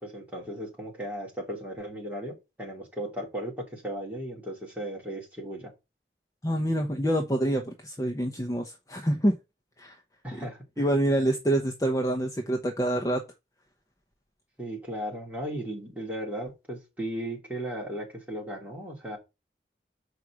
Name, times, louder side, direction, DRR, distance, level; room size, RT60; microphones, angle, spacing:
voice 1, 0.0-5.7 10.2-10.9 14.6-19.2, right 1 dB, 10° right, 2.8 m, -36 dB
voice 2, 6.4-9.4 9.8-9.9 10.3-10.4 10.8-13.2, right 1 dB, 20° left, 0.8 m, -26 dB
6.7 x 4.8 x 6.2 m
head